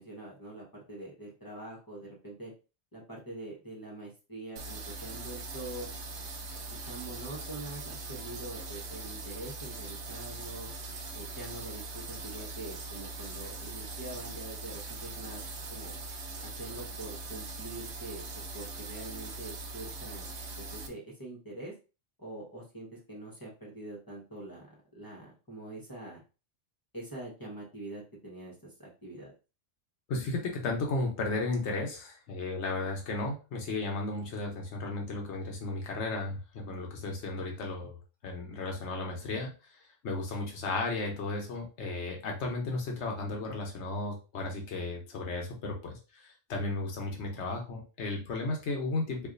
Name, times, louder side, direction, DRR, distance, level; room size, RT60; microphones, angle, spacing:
voice 1, 0.0-2.5 2.9-5.9 6.7-10.7 11.1-16.0 16.4-18.2 18.5-20.3 20.6-21.7 22.2-26.2 26.9-29.3, right 2 dB, 20° left, -5 dB, 1.1 m, -44 dB
sound 1, 4.6-20.9, right 3 dB, 75° right, 1.0 m, -41 dB
voice 2, 30.1-38.0 38.2-39.7 40.0-49.3, left 2 dB, 75° left, 1 dB, 1.2 m, -34 dB
4.5 x 2.7 x 2.5 m, 0.32 s
omnidirectional pair, 1.2 m